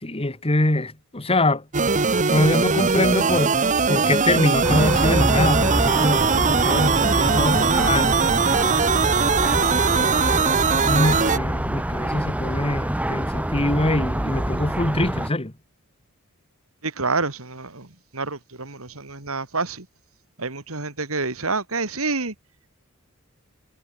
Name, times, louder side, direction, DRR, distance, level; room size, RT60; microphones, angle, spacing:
voice 1, 0.0-1.7 2.3-3.6 3.9-8.3 10.7-15.5, left 1 dB, 25° left, 2.0 m, -23 dB
sound 1, 1.7-11.4, right 5 dB, 35° right, 1.1 m, -20 dB
sound 2, 4.6-15.3, right 1 dB, 5° right, 0.9 m, -26 dB
voice 2, 16.8-17.9 18.1-19.9 20.4-22.3, right 3 dB, 70° right, 3.4 m, -28 dB
head